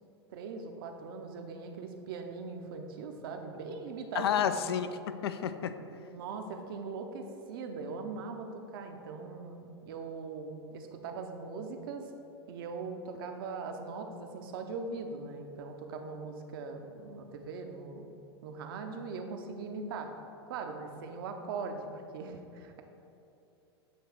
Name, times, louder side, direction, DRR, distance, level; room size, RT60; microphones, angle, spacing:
voice 1, 0.3-4.5 6.1-12.1 12.5-18.1 18.4-20.1 20.5-21.9 22.1-22.8, right 4 dB, 60° right, 5 dB, 0.7 m, -40 dB
voice 2, 4.1-5.7, left 8 dB, 70° left, 10 dB, 0.4 m, -30 dB
8.4 x 3.2 x 4.4 m, 2.8 s
figure-of-eight pair, 95°, 14 cm